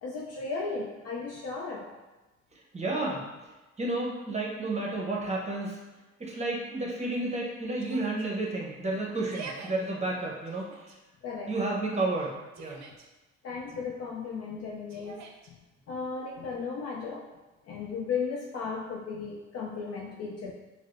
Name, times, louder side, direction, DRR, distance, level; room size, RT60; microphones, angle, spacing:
voice 1, 0.0-1.9 11.2-11.8 13.4-15.6 15.9-17.2 17.7-20.5, left 5 dB, 55° left, -2 dB, 0.5 m, -35 dB
voice 2, 2.7-3.3 3.8-5.8 6.2-10.9 11.5-12.8, right 2 dB, 20° right, -2 dB, 0.8 m, -31 dB
Yell, 7.8-8.3 9.1-9.7 10.5-11.0 12.2-13.1 14.9-15.5, right 5 dB, 65° right, 0.5 m, -45 dB
4.7 x 2.0 x 2.5 m, 1.1 s
cardioid pair, 90°, 30 cm